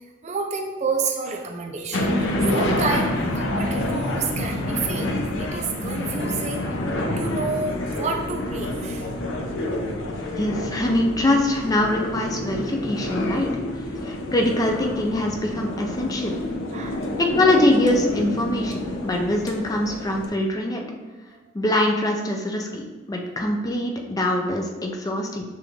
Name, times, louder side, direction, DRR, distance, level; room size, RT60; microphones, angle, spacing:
voice 1, 0.2-5.1 5.4-6.7 7.2-9.1 11.8-11.9 16.7-17.0, right 4 dB, 35° right, 3 dB, 0.5 m, -29 dB
sound 1, 1.9-20.3, left 1 dB, 85° left, 0.6 m, -28 dB
sound 2, 7.5-15.0, left 1 dB, 35° left, 1.3 m, -42 dB
voice 2, 10.4-13.5 14.0-16.4 17.2-20.8 21.5-25.4, left 1 dB, 20° left, 2 dB, 0.4 m, -23 dB
6.8 x 2.5 x 3.1 m, 1.3 s
head